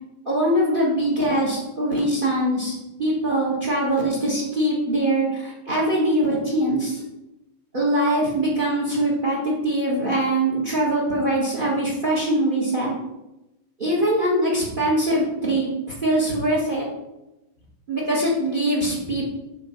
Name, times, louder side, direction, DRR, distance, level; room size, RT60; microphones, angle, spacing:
voice 1, 0.2-7.0 7.7-12.9 13.8-16.9 17.9-19.3, right 1 dB, 30° right, -3 dB, 1.6 m, -22 dB
7.2 x 3.9 x 6.1 m, 0.96 s
omnidirectional pair, 1.8 m